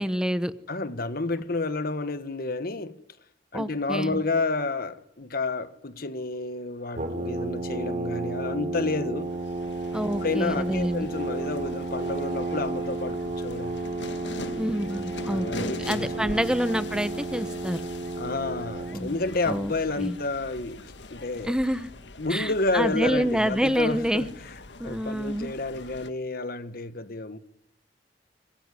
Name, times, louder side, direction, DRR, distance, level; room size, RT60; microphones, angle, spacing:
voice 1, 0.0-0.5 3.5-4.2 9.9-11.1 14.6-17.8 18.9-19.2 19.5-20.2 21.4-21.9 22.3-24.3 24.8-25.5, equal, 5° right, 1.0 m, -27 dB
voice 2, 0.7-3.0 3.5-9.3 10.2-13.8 15.3-16.5 18.2-20.8 21.1-21.6 22.2-24.5 24.8-27.4, left 3 dB, 55° left, 1.5 m, -30 dB
Brass instrument, 7.0-19.2, right 2 dB, 45° right, 4.2 m, -32 dB
sound 1, 9.2-26.1, left 2 dB, 80° left, 1.9 m, -42 dB
25.5 x 21.0 x 9.8 m
head